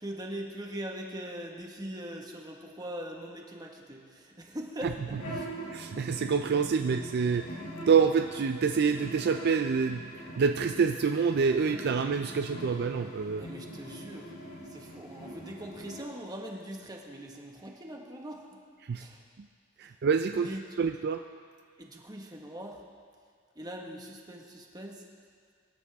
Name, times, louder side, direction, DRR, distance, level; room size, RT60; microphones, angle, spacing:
voice 1, 0.0-5.5 13.4-14.3 14.7-18.6 18.9-19.2 19.8-19.9 20.4-20.9 21.8-22.8 23.5-25.0, equal, 20° right, 0 dB, 1.5 m, -41 dB
sound 1, 5.1-16.0, equal, 80° left, 3.9 m, -43 dB
voice 2, 5.7-7.5 7.9-10.0 10.4-13.5 18.8-19.0 19.8-21.2, right 5 dB, 55° right, 7 dB, 0.4 m, -27 dB
24.0 x 11.0 x 3.6 m, 2.1 s
head